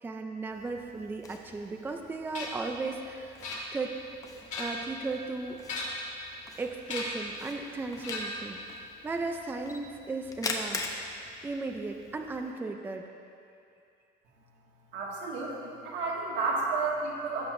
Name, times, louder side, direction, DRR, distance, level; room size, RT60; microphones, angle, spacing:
voice 1, 0.0-3.4 3.7-3.9 4.6-5.6 6.6-8.8 9.0-10.8 11.4-13.0, right 3 dB, 10° right, 4 dB, 0.4 m, -36 dB
Camera, 0.5-12.5, left 3 dB, 20° left, 0.8 m, -43 dB
sound 1, 2.3-2.7 3.4-4.0 4.4-4.9 5.6-6.1 6.9-7.3 8.0-8.5, left 2 dB, 40° left, 2.1 m, -36 dB
voice 2, 14.9-17.5, right 3 dB, 85° right, -3 dB, 2.1 m, -31 dB
17.0 x 7.9 x 2.6 m, 2.5 s
cardioid pair, 165°, 18 cm